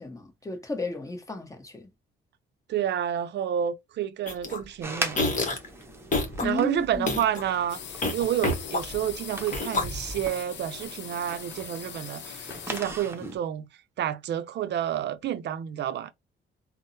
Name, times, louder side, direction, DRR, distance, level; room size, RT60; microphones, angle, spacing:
voice 1, 0.0-1.9 6.4-7.2, left 3 dB, 15° left, 1.0 m, -33 dB
voice 2, 2.7-5.5 6.4-7.8 8.1-13.7 14.0-16.1, right 10 dB, 60° right, 0.5 m, -29 dB
sound 1, 4.3-4.6 5.1-5.7 6.1-6.5 6.9-7.4 8.0-9.1 9.5-10.2, left 2 dB, 40° left, 1.0 m, -28 dB
sound 2, 4.8-13.4, right 2 dB, 10° right, 0.8 m, -40 dB
sound 3, 7.7-13.0, left 8 dB, 65° left, 0.6 m, -41 dB
3.5 x 2.0 x 2.6 m
cardioid pair, 90°, 20 cm